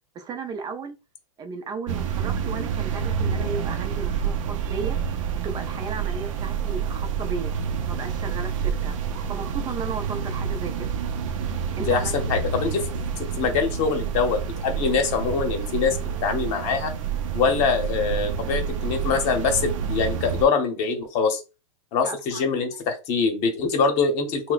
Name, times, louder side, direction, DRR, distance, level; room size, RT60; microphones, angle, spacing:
voice 1, 0.1-1.0 1.4-5.0 5.3-7.5 7.9-9.0 9.3-10.9 11.7-12.4 22.0-22.5, right 5 dB, 25° right, 0.5 m, -35 dB
sound 1, 1.9-20.5, right 7 dB, 70° right, 0.6 m, -28 dB
voice 2, 11.9-12.9 13.2-16.9 17.3-21.4 21.9-24.5, left 5 dB, 45° left, 0.9 m, -24 dB
2.8 x 2.2 x 3.9 m
hypercardioid pair, 125°, 17 cm